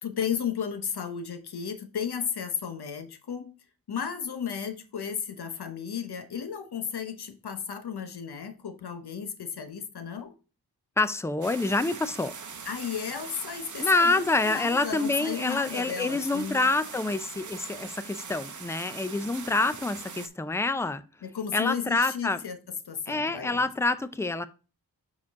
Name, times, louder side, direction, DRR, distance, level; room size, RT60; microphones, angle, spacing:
voice 1, 0.0-3.5 3.9-10.3 12.7-16.7 21.2-22.6 22.9-23.6, left 7 dB, 75° left, 1.0 m, -34 dB
voice 2, 11.0-12.3 13.8-21.0 21.5-22.4 23.1-24.5, left 3 dB, 5° left, 0.5 m, -27 dB
sound 1, 11.4-20.3, right 5 dB, 50° right, 0.8 m, -42 dB
6.1 x 4.8 x 3.6 m
cardioid pair, 60°, 40 cm